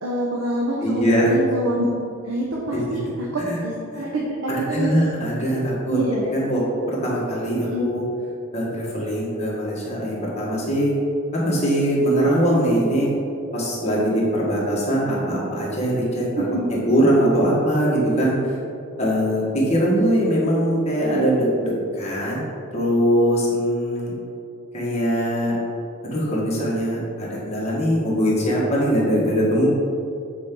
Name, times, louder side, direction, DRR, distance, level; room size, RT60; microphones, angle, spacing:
voice 1, 0.0-1.9 2.2-5.1 5.9-6.2 7.7-7.9 16.4-16.7 18.4-18.5, right 1 dB, 80° right, -4 dB, 0.9 m, -26 dB
voice 2, 0.8-1.3 2.7-3.0 3.5-3.6 3.9-4.0 4.5-6.0 6.3-8.0 8.5-10.9 11.3-13.1 13.5-16.3 16.7-18.6 19.0-22.4 22.7-24.1 24.7-25.6 26.0-29.7, equal, 30° left, -6 dB, 1.5 m, -21 dB
7.6 x 4.5 x 3.8 m, 2.6 s
head